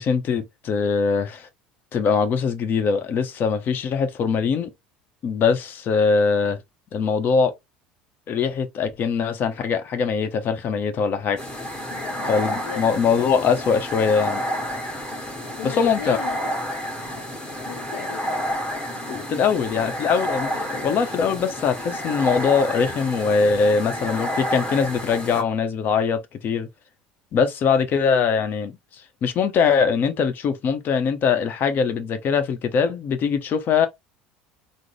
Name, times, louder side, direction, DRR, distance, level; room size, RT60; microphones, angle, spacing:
voice 1, 0.0-1.5 1.9-4.7 5.2-6.6 6.9-7.5 8.3-11.4 12.3-14.4 15.6-16.2 19.1-26.7 27.3-28.8 29.2-33.9, left 5 dB, 45° left, 0.8 m, -22 dB
sound 1, 11.4-25.4, equal, 15° left, 1.7 m, -30 dB
voice 2, 11.9-12.8 15.6-16.4 17.7-18.3 19.2-19.9, left 9 dB, 75° left, 0.6 m, -36 dB
3.7 x 2.0 x 3.1 m
hypercardioid pair, 70°, 5 cm